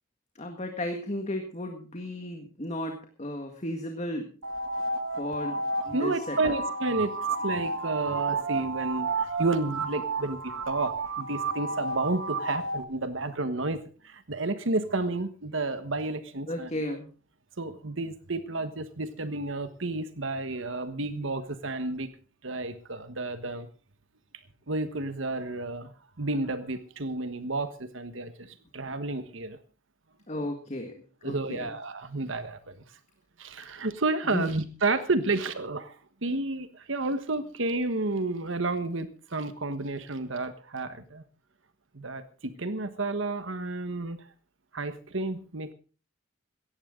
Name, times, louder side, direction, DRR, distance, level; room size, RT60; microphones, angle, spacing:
voice 1, 0.4-4.3 5.2-6.5 16.5-17.1 30.3-30.9 31.2-31.7 34.3-34.5, left 1 dB, 35° left, 4 dB, 1.8 m, -34 dB
sound 1, 4.4-12.8, right 3 dB, 90° right, 1.5 m, -32 dB
voice 2, 5.9-9.1 9.4-17.0 17.6-22.1 22.4-23.7 24.7-25.9 26.2-29.6 31.2-32.7 33.4-35.9 36.2-41.2 41.9-44.2 44.7-45.7, right 2 dB, 70° right, 11 dB, 1.3 m, -31 dB
17.5 x 14.5 x 3.8 m, 0.36 s
head